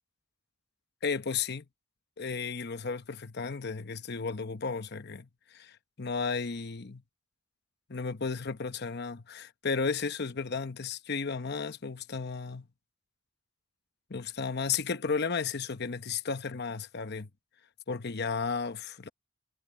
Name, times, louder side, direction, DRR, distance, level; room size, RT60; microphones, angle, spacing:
voice 1, 1.0-1.6 2.2-7.0 7.9-12.7 14.1-17.3 17.9-19.1, left 5 dB, 50° left, 0.9 m, -34 dB
head